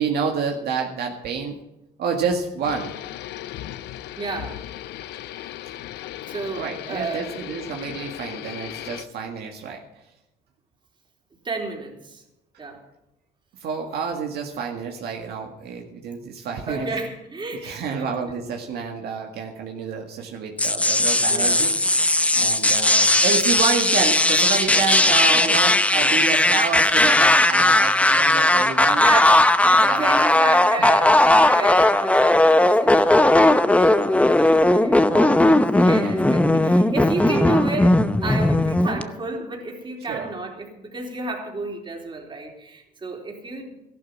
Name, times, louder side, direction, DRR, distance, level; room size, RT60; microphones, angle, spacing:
voice 1, 0.0-1.6 2.0-2.9 6.5-9.8 13.6-16.9 17.6-21.7 22.3-29.1 29.6-30.2 30.8-30.9 31.7-31.8 35.1-36.2 40.1-40.3, right 5 dB, 70° right, 2 dB, 1.9 m, -29 dB
sound 1, 2.6-9.1, left 13 dB, 80° left, 0.8 m, -36 dB
voice 2, 4.2-4.6 6.3-7.3 11.4-12.2 12.6-12.8 16.7-18.1 21.3-21.6 29.0-35.0 35.7-43.9, right 3 dB, 30° right, 1 dB, 3.9 m, -32 dB
sound 2, 20.6-39.0, left 1 dB, 10° left, 0.8 m, -17 dB
14.0 x 12.0 x 6.0 m, 0.89 s
cardioid pair, 110°, 17 cm